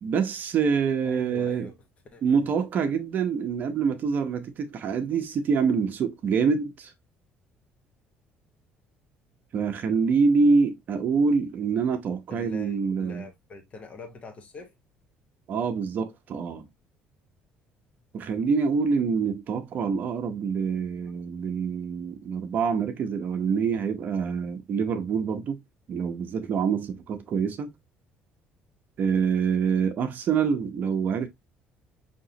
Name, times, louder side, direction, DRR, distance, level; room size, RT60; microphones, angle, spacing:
voice 1, 0.0-1.7 2.2-6.9 9.5-13.2 15.5-16.7 18.1-25.6 25.9-27.7 29.0-31.3, right 5 dB, 50° right, 0.7 m, -26 dB
voice 2, 1.0-1.8 2.1-2.4 12.3-14.7, left 3 dB, 30° left, 0.9 m, -43 dB
5.3 x 2.9 x 2.7 m
cardioid pair, 130°, 4 cm